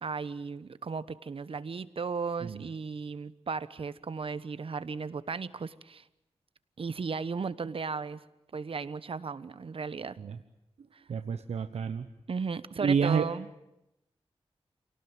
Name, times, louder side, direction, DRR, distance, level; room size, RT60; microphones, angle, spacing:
voice 1, 0.0-6.0 6.8-8.2 8.5-10.2 10.9-11.0 12.3-13.5, right 5 dB, 60° right, 15 dB, 1.2 m, -35 dB
voice 2, 11.1-12.1 12.8-13.2, right 6 dB, 90° right, 8 dB, 1.0 m, -28 dB
28.5 x 18.5 x 9.1 m, 0.90 s
wide cardioid pair, 85°, 11 cm